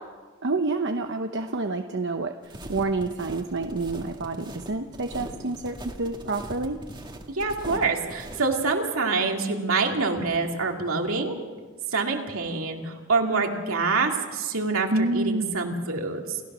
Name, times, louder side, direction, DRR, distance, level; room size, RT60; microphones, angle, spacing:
voice 1, 0.4-6.8 14.9-15.4, right 3 dB, 55° right, 6 dB, 0.9 m, -28 dB
sound 1, 2.4-8.4, right 1 dB, 20° right, 1.9 m, -40 dB
voice 2, 7.3-11.4 11.9-14.9 15.1-16.4, right 4 dB, 75° right, 2 dB, 2.7 m, -26 dB
29.0 x 15.0 x 6.2 m, 1.4 s
head